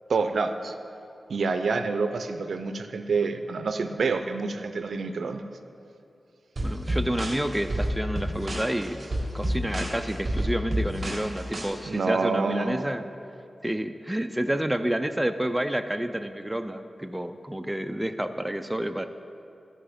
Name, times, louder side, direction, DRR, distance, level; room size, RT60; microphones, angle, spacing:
voice 1, 0.1-0.7 1.3-5.4 11.8-12.9, right 4 dB, 80° right, 8 dB, 0.4 m, -27 dB
voice 2, 6.6-9.1 9.3-13.0 13.6-19.1, right 1 dB, 10° right, 8 dB, 0.4 m, -29 dB
sound 1, 6.6-11.7, equal, 40° right, 1.8 m, -29 dB
12.5 x 4.9 x 5.0 m, 2.7 s
wide cardioid pair, 85°, 0 cm